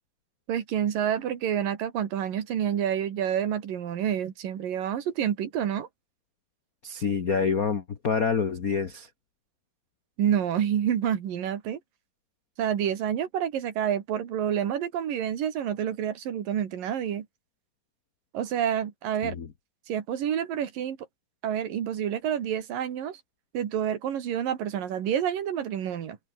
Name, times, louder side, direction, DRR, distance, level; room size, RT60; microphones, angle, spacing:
voice 1, 0.5-5.9 10.2-11.8 12.6-17.3 18.3-19.4 19.9-21.0 21.4-23.2 23.5-26.2, right 9 dB, 90° right, 3.9 m, -28 dB
voice 2, 6.8-9.1 19.2-19.5, left 5 dB, 90° left, 0.7 m, -27 dB
omnidirectional pair, 3.8 m